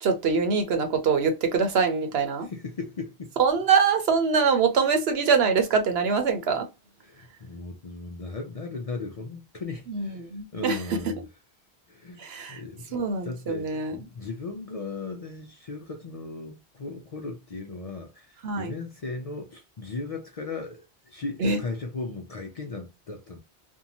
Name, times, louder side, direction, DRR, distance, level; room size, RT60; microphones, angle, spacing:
voice 1, 0.0-2.5 3.4-6.7 9.9-10.8 12.2-12.6 12.9-14.0 18.4-18.7 21.4-21.6, right 5 dB, 70° right, 0.9 m, -24 dB
voice 2, 2.5-3.3 7.0-10.3 10.5-11.2 11.9-13.0 13.2-23.4, left 3 dB, 50° left, 0.5 m, -37 dB
2.6 x 2.3 x 2.7 m
omnidirectional pair, 1.1 m